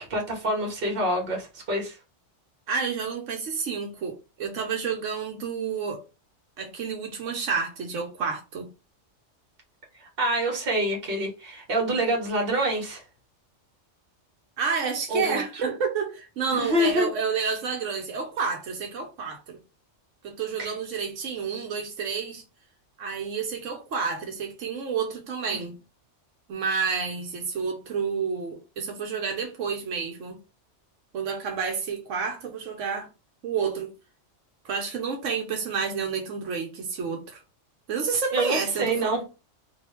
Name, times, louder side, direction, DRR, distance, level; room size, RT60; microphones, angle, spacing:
voice 1, 0.0-2.0 10.0-13.0 15.1-15.4 16.5-17.1 20.6-20.7 38.3-39.2, right 1 dB, 50° right, 1.4 m, -26 dB
voice 2, 2.7-6.0 6.6-8.7 14.6-19.6 20.2-22.4 23.0-25.7 26.5-30.4 31.1-33.1 33.4-33.9 34.6-37.4 37.9-39.2, right 5 dB, 85° right, 1.1 m, -30 dB
3.0 x 2.7 x 3.2 m
omnidirectional pair, 1.3 m